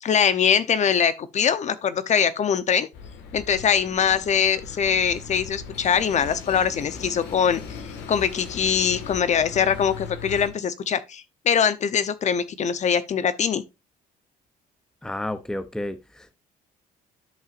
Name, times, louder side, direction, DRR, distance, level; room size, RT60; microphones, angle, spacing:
voice 1, 0.0-2.9 3.3-13.6, left 7 dB, 45° left, 0.9 m, -23 dB
sound 1, 2.9-10.5, left 5 dB, 85° left, 1.9 m, -38 dB
voice 2, 15.0-16.3, left 1 dB, 5° left, 0.7 m, -31 dB
12.5 x 5.5 x 2.6 m
cardioid pair, 110°, 17 cm